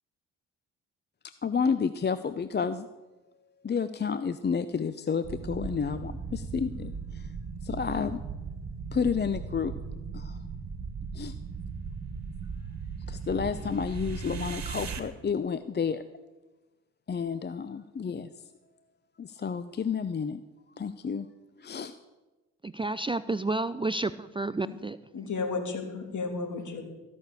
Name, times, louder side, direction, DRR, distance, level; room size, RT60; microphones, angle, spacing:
voice 1, 1.4-2.9 3.6-7.3 7.6-8.2 8.9-9.7 10.1-10.4 11.1-11.3 13.1-16.0 17.1-18.3 19.2-20.4 20.8-21.3 21.6-21.9, left 6 dB, 30° left, 12 dB, 0.7 m, -30 dB
sound 1, 5.2-15.0, right 5 dB, 50° right, 1.8 m, -37 dB
voice 2, 22.6-25.0, right 2 dB, 15° right, 14 dB, 0.5 m, -30 dB
voice 3, 25.1-26.8, left 4 dB, 55° left, 5 dB, 2.9 m, -33 dB
15.0 x 6.5 x 8.4 m, 1.2 s
hypercardioid pair, 55°, 36 cm